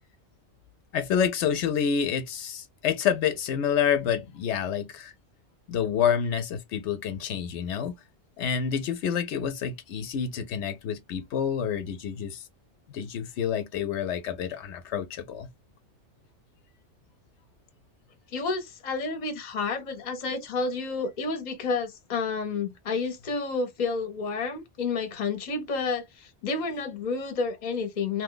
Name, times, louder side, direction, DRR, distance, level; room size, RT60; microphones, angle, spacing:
voice 1, 0.9-5.1 5.7-7.9 8.4-12.4 12.9-15.5, left 8 dB, 80° left, 0.9 m, -28 dB
voice 2, 18.3-28.2, left 4 dB, 45° left, 0.8 m, -30 dB
2.7 x 2.2 x 3.7 m
omnidirectional pair, 1.2 m